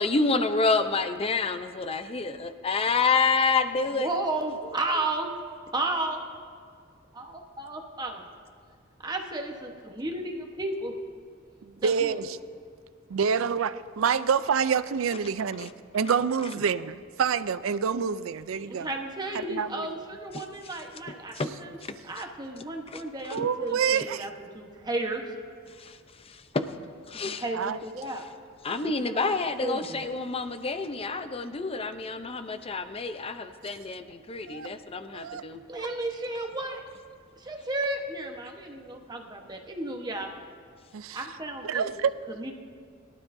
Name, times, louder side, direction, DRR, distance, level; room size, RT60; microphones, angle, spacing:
voice 1, 0.0-4.1 15.6-15.7 20.3-20.4 21.4-21.5 21.8-22.2 22.9-23.0 23.4-23.5 25.8-26.7 27.1-27.4 28.6-35.6, left 4 dB, 30° left, 9 dB, 0.6 m, -28 dB
voice 2, 3.9-5.3 5.7-6.2 7.2-7.3 7.6-8.3 9.0-9.7 10.0-10.9 11.8-12.2 18.6-21.8 22.0-25.2 27.1-28.2 28.8-29.3 29.6-30.0 35.7-36.8 37.4-40.3 41.1-41.9 42.3-42.5, right 2 dB, 20° right, 2 dB, 1.1 m, -33 dB
voice 3, 11.8-12.4 13.1-18.9 19.3-20.0 23.3-24.3 27.5-27.8 34.5-34.7 35.1-35.4 40.9-41.2 41.6-42.1, right 6 dB, 75° right, 14 dB, 0.4 m, -27 dB
22.0 x 12.0 x 2.7 m, 2.1 s
head